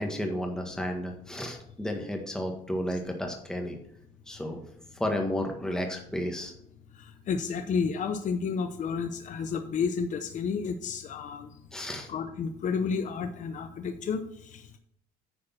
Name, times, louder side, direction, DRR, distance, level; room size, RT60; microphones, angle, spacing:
voice 1, 0.0-3.8 4.3-4.6 4.9-6.5 11.7-12.1, equal, 5° left, 2 dB, 1.7 m, -32 dB
voice 2, 6.9-11.5 12.1-14.7, left 5 dB, 50° left, 8 dB, 0.8 m, -31 dB
10.0 x 5.0 x 6.0 m, 0.74 s
cardioid pair, 110°, 17 cm